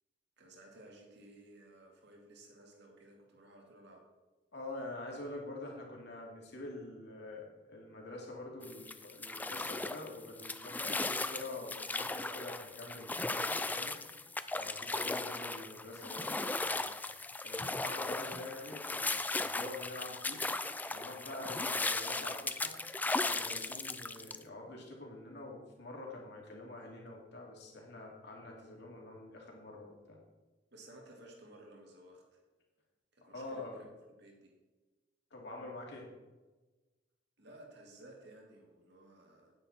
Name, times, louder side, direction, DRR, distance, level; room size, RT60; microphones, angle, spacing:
voice 1, 0.4-4.0 30.7-32.4 33.1-33.9 34.2-34.5 37.4-39.5, right 1 dB, 65° right, 0 dB, 2.2 m, -56 dB
voice 2, 4.5-14.0 14.5-16.9 17.4-20.4 20.9-22.7 23.2-30.2 33.2-33.8 35.3-36.1, left 2 dB, 65° left, -1 dB, 2.6 m, -46 dB
sound 1, 8.6-24.4, left 3 dB, 10° left, 0.3 m, -37 dB
9.6 x 9.2 x 4.3 m, 1.2 s
head